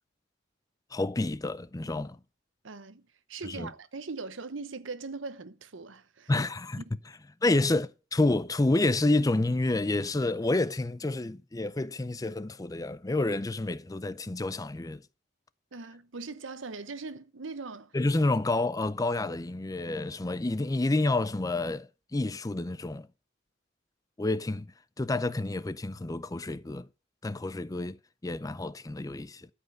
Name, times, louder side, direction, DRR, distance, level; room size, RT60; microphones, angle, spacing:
voice 1, 0.9-2.2 3.4-3.7 6.3-6.8 7.4-15.0 17.9-23.1 24.2-26.9 27.2-29.5, left 2 dB, 20° left, 0.5 m, -29 dB
voice 2, 2.6-6.3 6.8-6.9 7.5-7.6 15.7-18.0, right 4 dB, 90° right, 0.9 m, -40 dB
13.0 x 5.5 x 7.7 m
head